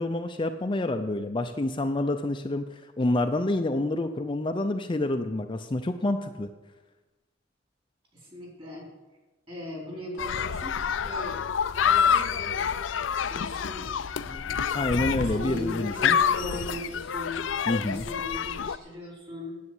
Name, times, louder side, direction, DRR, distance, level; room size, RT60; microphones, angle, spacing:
voice 1, 0.0-6.5 14.7-16.2 17.7-18.0, left 2 dB, 25° left, 6 dB, 0.5 m, -28 dB
voice 2, 8.1-8.9 9.5-11.5 11.8-12.7 13.3-14.8 15.2-17.4 17.9-19.5, left 1 dB, 30° right, -2 dB, 4.3 m, -39 dB
sound 1, 10.2-18.8, left 7 dB, 85° left, 0.5 m, -27 dB
9.8 x 8.4 x 7.8 m, 1.1 s
head